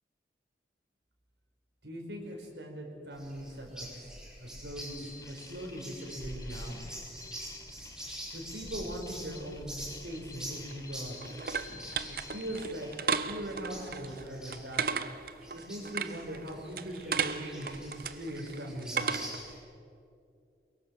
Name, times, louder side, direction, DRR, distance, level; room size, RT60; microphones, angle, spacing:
voice 1, 1.8-4.1 4.4-6.8 8.3-11.2 12.3-12.9 13.3-14.8 15.5-19.2, equal, 75° right, 1 dB, 4.7 m, -40 dB
sound 1, 3.1-19.6, equal, 5° right, 5.4 m, -46 dB
sound 2, 4.7-13.1, left 4 dB, 20° left, 1.1 m, -52 dB
sound 3, 10.5-19.5, right 6 dB, 55° right, 0.8 m, -36 dB
23.0 x 22.5 x 6.5 m, 2.5 s
head